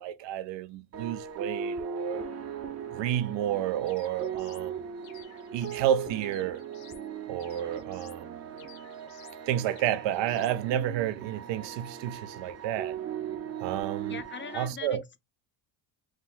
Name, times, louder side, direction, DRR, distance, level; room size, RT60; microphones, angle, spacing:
voice 1, 0.0-2.2 2.9-4.8 5.5-6.6 7.3-8.4 9.5-13.0 13.6-14.1 14.5-15.0, right 11 dB, 75° right, 0.6 m, -30 dB
sound 1, 0.9-14.6, right 7 dB, 35° right, 0.7 m, -39 dB
sound 2, 3.9-4.7 5.0-5.9 6.2-7.1 7.4-8.2 8.6-9.4 9.8-10.6, left 12 dB, 75° left, 1.2 m, -55 dB
voice 2, 14.1-15.2, left 6 dB, 25° left, 0.5 m, -41 dB
4.6 x 2.2 x 3.7 m
cardioid pair, 120°, 44 cm